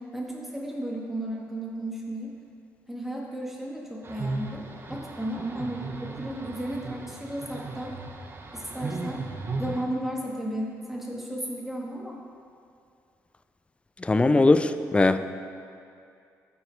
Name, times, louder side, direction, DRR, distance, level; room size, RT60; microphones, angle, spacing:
voice 1, 0.1-2.3 2.9-7.9 8.5-9.2 9.6-12.2, right 1 dB, 5° right, -3 dB, 1.7 m, -34 dB
sound 1, 4.0-9.8, right 3 dB, 35° right, 0.8 m, -36 dB
voice 2, 14.0-15.2, left 2 dB, 20° left, 11 dB, 0.4 m, -20 dB
13.5 x 4.7 x 3.3 m, 2.5 s
cardioid pair, 75°, 6 cm